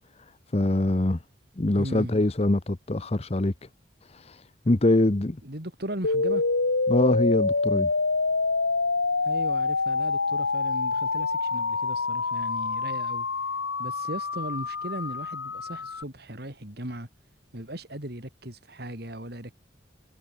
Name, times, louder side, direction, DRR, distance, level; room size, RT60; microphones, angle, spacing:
voice 1, 0.5-1.2 1.6-3.5 4.1-5.4 6.9-7.9, left 1 dB, 35° left, 0.8 m, -24 dB
voice 2, 1.7-2.1 5.4-6.4 9.2-13.3 13.8-17.1 17.5-19.5, right 1 dB, 55° right, 4.5 m, -37 dB
sound 1, 6.0-16.0, left 3 dB, 85° left, 2.1 m, -26 dB
head